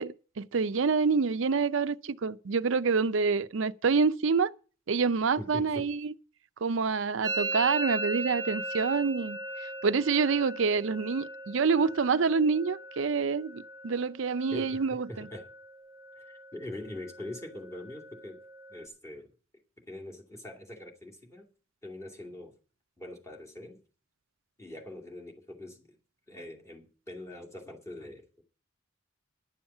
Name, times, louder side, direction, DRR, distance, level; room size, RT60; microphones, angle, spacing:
voice 1, 0.0-4.5 4.9-6.1 6.6-15.3, right 5 dB, 70° right, 0.5 m, -27 dB
voice 2, 5.4-5.9 14.5-14.7 15.1-15.5 16.2-18.4 18.7-19.3 19.8-21.5 21.8-22.5 23.0-23.8 24.6-26.0 26.3-28.4, left 1 dB, 15° left, 2.5 m, -43 dB
Musical instrument, 7.2-14.9 15.1-15.7 16.0-16.6 16.8-18.9, right 2 dB, 15° right, 1.2 m, -38 dB
11.0 x 7.2 x 7.2 m
head